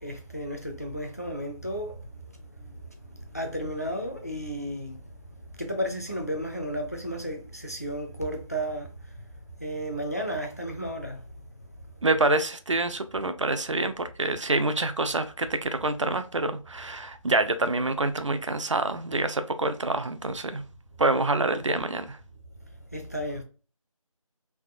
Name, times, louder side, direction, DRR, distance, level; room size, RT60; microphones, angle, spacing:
voice 1, 0.0-2.0 3.3-5.0 5.6-8.9 9.6-11.2 22.9-23.4, equal, 30° left, 0.4 m, -33 dB
voice 2, 12.0-20.6 21.0-22.2, right 2 dB, 60° right, 0.5 m, -26 dB
3.4 x 2.4 x 2.4 m
figure-of-eight pair, 165°, 18 cm